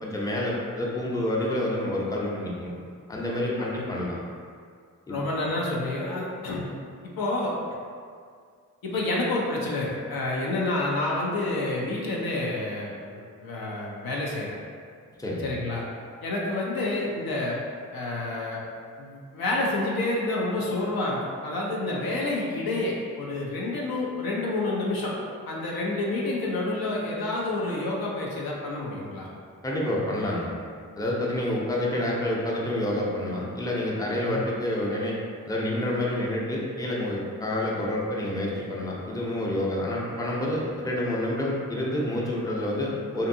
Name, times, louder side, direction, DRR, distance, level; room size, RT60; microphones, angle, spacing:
voice 1, 0.0-2.7 3.1-4.2 5.1-5.2 15.2-15.5 29.6-30.5 31.0-35.2 35.4-43.3, left 1 dB, 10° left, -4 dB, 0.6 m, -28 dB
voice 2, 5.1-6.7 7.2-7.5 8.8-14.6 15.4-15.9 16.2-17.6 17.9-18.6 19.0-25.2 25.5-29.3 34.3-34.4, left 2 dB, 75° left, -3 dB, 0.6 m, -29 dB
2.6 x 2.5 x 2.6 m, 2.2 s
supercardioid pair, 40°, 37 cm